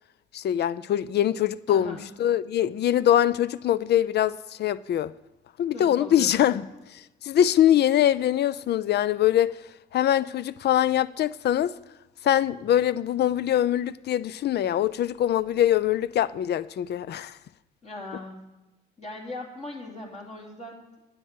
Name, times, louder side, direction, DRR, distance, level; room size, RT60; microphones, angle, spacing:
voice 1, 0.3-5.1 5.6-6.6 6.9-9.5 9.9-11.7 12.2-17.4, left 11 dB, 55° left, 0.5 m, -23 dB
voice 2, 1.7-2.1 5.7-6.8 17.8-18.5 19.0-20.9, left 2 dB, 35° left, 3.1 m, -39 dB
9.9 x 8.0 x 7.5 m
cardioid pair, 90°, 20 cm